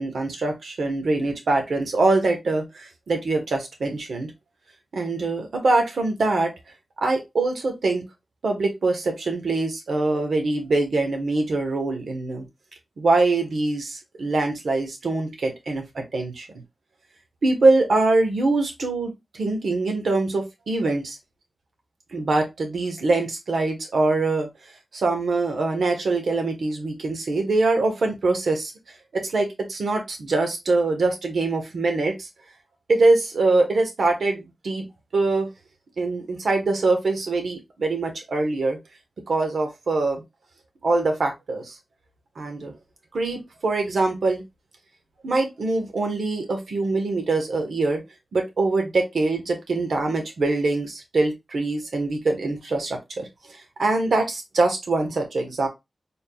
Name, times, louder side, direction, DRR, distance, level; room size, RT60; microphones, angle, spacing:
voice 1, 0.0-4.3 4.9-6.5 7.0-8.0 8.4-12.5 13.0-16.5 17.4-21.2 22.1-24.5 24.9-28.7 29.1-32.3 32.9-34.9 35.1-35.5 36.0-38.8 39.3-40.2 40.8-41.8 42.4-42.8 43.1-44.4 45.2-48.0 48.3-55.7, right 3 dB, 85° right, 3 dB, 1.2 m, -23 dB
4.3 x 3.7 x 2.3 m, 0.21 s
wide cardioid pair, 125°, 0 cm